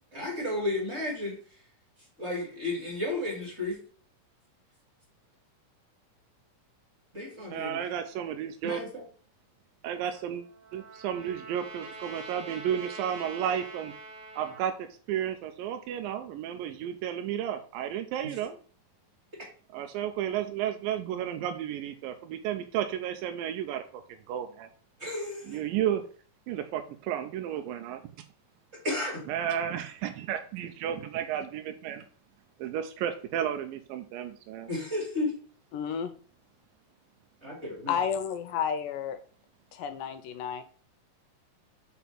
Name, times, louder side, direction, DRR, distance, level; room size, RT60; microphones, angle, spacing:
voice 1, 0.1-1.4 2.2-3.8 7.1-7.8 8.6-9.0 19.3-19.5 25.0-25.6 28.8-29.3 34.7-35.3 37.4-38.0, left 2 dB, 25° right, 2.0 m, -33 dB
voice 2, 7.5-8.8 9.8-10.5 10.7-13.9 14.4-18.5 19.7-24.0 24.3-24.7 25.5-26.0 26.5-28.0 29.3-32.0 32.6-34.7, right 10 dB, 85° right, 2.3 m, -32 dB
Trumpet, 10.1-14.8, right 2 dB, 60° right, 2.8 m, -44 dB
voice 3, 35.7-36.1 37.9-39.2 39.7-40.6, left 7 dB, 80° left, 2.2 m, -31 dB
5.6 x 4.2 x 5.7 m
omnidirectional pair, 4.0 m